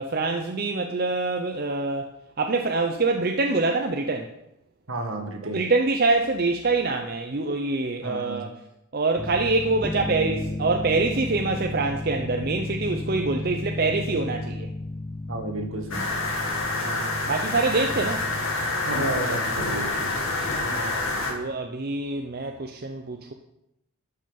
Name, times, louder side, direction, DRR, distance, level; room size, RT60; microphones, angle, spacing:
voice 1, 0.0-2.1 2.4-4.3 5.5-8.5 8.9-14.7 16.8-18.3 20.6-23.3, right 3 dB, 45° right, 4 dB, 0.6 m, -25 dB
voice 2, 4.9-5.6 8.0-8.4 15.3-16.0 18.9-20.1, right 2 dB, 70° right, 3 dB, 1.7 m, -31 dB
sound 1, 9.2-19.0, left 2 dB, 10° left, 0.3 m, -34 dB
sound 2, 15.9-21.3, left 2 dB, 70° left, 2.0 m, -27 dB
12.5 x 5.3 x 5.4 m, 0.85 s
head